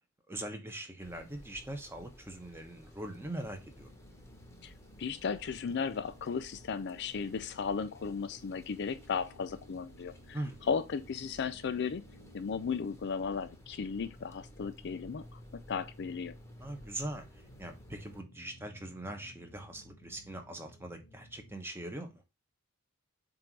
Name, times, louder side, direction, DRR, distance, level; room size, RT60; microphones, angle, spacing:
voice 1, 0.3-3.9 10.3-10.6 16.6-17.2 17.6-22.1, right 1 dB, 10° right, 1.0 m, -41 dB
sound 1, 1.0-18.2, equal, 15° left, 1.0 m, -56 dB
sound 2, 3.1-21.6, equal, 90° left, 1.3 m, -56 dB
voice 2, 5.0-10.4 10.7-12.0 12.3-15.4 15.7-16.3, left 5 dB, 50° left, 0.4 m, -35 dB
7.8 x 2.7 x 4.6 m
head